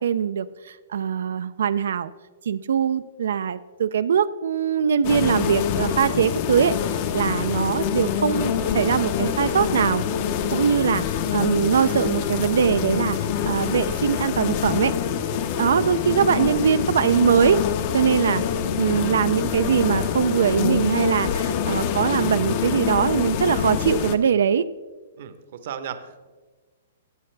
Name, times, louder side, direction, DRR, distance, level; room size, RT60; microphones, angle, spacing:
voice 1, 0.0-2.1 2.5-10.0 10.5-14.9 15.6-17.6 17.9-18.4 18.8-24.6, right 7 dB, 70° right, 13 dB, 0.4 m, -22 dB
sound 1, 5.0-24.2, left 8 dB, 30° left, 0.6 m, -25 dB
voice 2, 21.6-22.0 25.2-26.3, right 8 dB, 45° right, 11 dB, 0.8 m, -36 dB
14.5 x 8.6 x 3.3 m, 1.3 s
hypercardioid pair, 170°, 0 cm